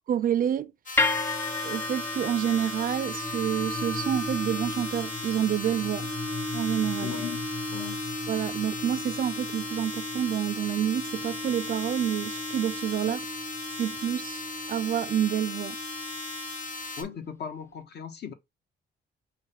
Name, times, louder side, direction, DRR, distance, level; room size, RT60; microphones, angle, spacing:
voice 1, 0.1-0.7 1.6-6.1 6.5-7.1 8.3-13.2 13.8-14.4 14.7-15.8, right 10 dB, 45° right, 0.4 m, -28 dB
sound 1, 0.9-17.0, left 3 dB, 40° left, 1.4 m, -38 dB
sound 2, 1.0-17.2, left 2 dB, 10° left, 0.5 m, -34 dB
voice 2, 7.0-7.4 7.7-8.0 17.0-18.3, left 8 dB, 55° left, 1.0 m, -37 dB
5.1 x 2.2 x 3.9 m
cardioid pair, 90°, 20 cm